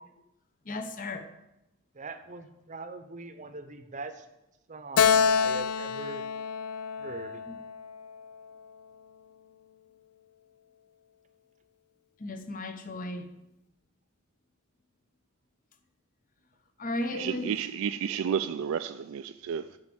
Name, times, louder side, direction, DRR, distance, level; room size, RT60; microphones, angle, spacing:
voice 1, 0.7-1.3 7.5-7.6 12.2-13.3 16.8-17.6, left 1 dB, 40° left, 0.8 m, -35 dB
voice 2, 1.9-4.2 4.7-6.2 7.0-7.4, right 3 dB, 35° right, 0.7 m, -41 dB
Keyboard (musical), 5.0-8.4, left 7 dB, 85° left, 0.4 m, -27 dB
voice 3, 17.1-19.6, right 7 dB, 65° right, 0.3 m, -31 dB
9.4 x 5.1 x 7.7 m
head